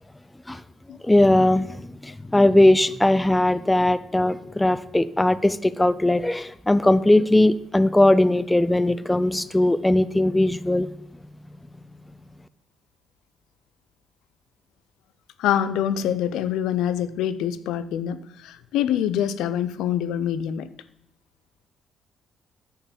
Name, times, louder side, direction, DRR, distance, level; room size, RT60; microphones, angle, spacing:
voice 1, 1.0-10.9, left 1 dB, 10° left, 15 dB, 0.5 m, -19 dB
voice 2, 15.4-20.7, left 10 dB, 90° left, 14 dB, 0.5 m, -25 dB
9.8 x 4.7 x 7.3 m, 0.76 s
cardioid pair, 90°, 0 cm